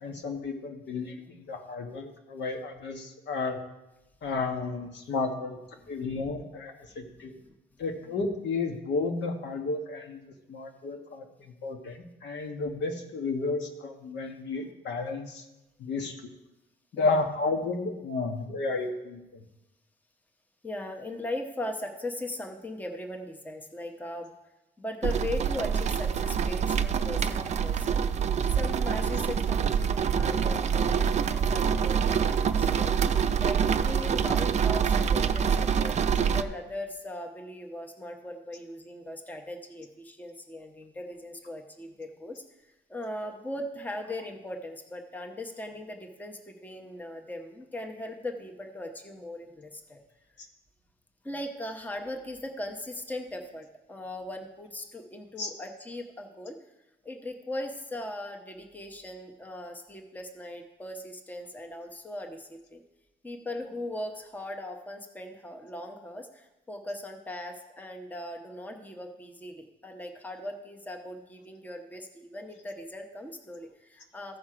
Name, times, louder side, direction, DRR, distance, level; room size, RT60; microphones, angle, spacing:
voice 1, 0.0-3.6 4.2-5.6 5.9-7.3 7.8-15.4 15.8-16.1 16.9-19.4 55.4-55.5, left 3 dB, 75° left, 4 dB, 1.4 m, -32 dB
voice 2, 7.0-7.5 17.0-17.2 20.6-24.3 24.8-28.0 28.5-30.9 31.3-32.9 33.4-36.1 36.3-42.4 42.9-50.0 51.2-56.6 57.0-62.8 63.2-74.4, left 1 dB, 10° left, 4 dB, 0.9 m, -39 dB
sound 1, 25.0-36.4, right 7 dB, 40° right, 0.4 m, -26 dB
14.5 x 6.1 x 4.9 m, 0.96 s
wide cardioid pair, 160°, 18 cm